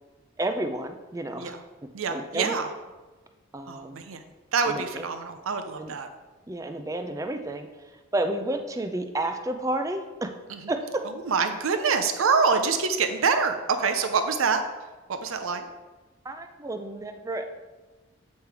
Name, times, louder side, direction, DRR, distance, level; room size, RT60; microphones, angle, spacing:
voice 1, 0.4-1.6 2.1-2.5 3.5-4.0 4.7-5.1 5.8-5.9 6.5-7.7 8.1-10.3 10.7-11.0 16.2-17.5, right 1 dB, 15° right, 6 dB, 0.4 m, -31 dB
voice 2, 1.9-2.7 3.7-4.2 4.5-6.1 10.5-10.6 11.3-14.6 15.1-15.7, right 5 dB, 75° right, 7 dB, 0.5 m, -25 dB
8.2 x 3.2 x 4.7 m, 1.2 s
head